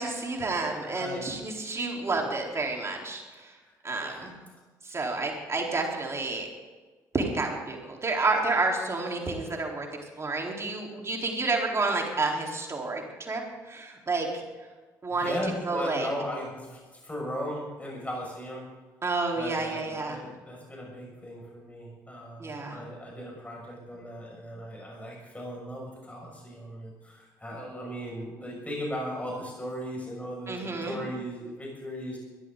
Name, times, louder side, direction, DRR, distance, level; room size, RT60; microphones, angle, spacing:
voice 1, 0.0-3.5 3.8-4.4 4.8-6.5 7.1-9.9 10.2-13.4 13.7-14.4 15.0-16.1 19.0-20.2 22.4-22.8 30.5-31.0, right 3 dB, 30° right, 0 dB, 4.3 m, -30 dB
voice 2, 0.7-1.2 3.6-4.5 4.9-5.0 15.2-18.6 19.3-32.2, equal, 15° left, -2 dB, 6.8 m, -37 dB
22.0 x 14.5 x 4.1 m, 1.3 s
figure-of-eight pair, 45°, 9 cm